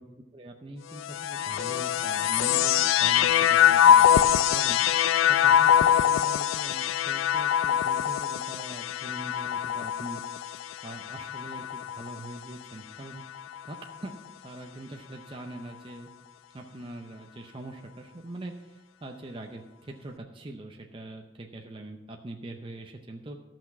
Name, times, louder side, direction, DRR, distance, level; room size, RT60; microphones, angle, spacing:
voice 1, 0.3-5.1 5.4-10.2 10.8-13.2 13.6-14.1 14.4-16.1 16.5-23.4, right 1 dB, 25° right, 2 dB, 0.6 m, -42 dB
sound 1, 0.9-12.4 13.2-13.9, left 9 dB, 85° left, 0.3 m, -23 dB
13.5 x 6.0 x 5.9 m, 1.1 s
head